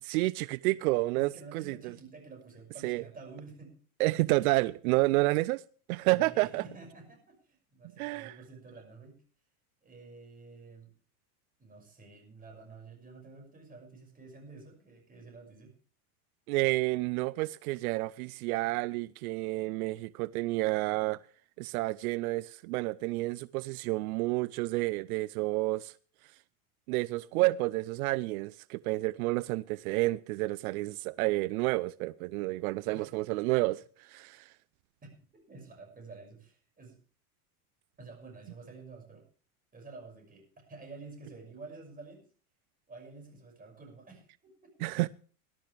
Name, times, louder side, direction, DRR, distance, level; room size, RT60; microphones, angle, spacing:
voice 1, 0.0-1.8 2.8-3.0 4.0-5.6 5.9-6.6 8.0-8.3 16.5-21.2 21.6-25.9 26.2-26.4 26.9-34.5 44.8-45.1, right 21 dB, 80° right, 0.6 m, -30 dB
voice 2, 1.1-3.7 6.1-9.2 9.8-10.9 11.6-15.7 32.9-33.1 35.0-37.0 38.0-39.2 39.7-42.3 42.9-44.7, right 3 dB, 20° right, 6.0 m, -50 dB
19.5 x 12.0 x 3.4 m
supercardioid pair, 130°, 43 cm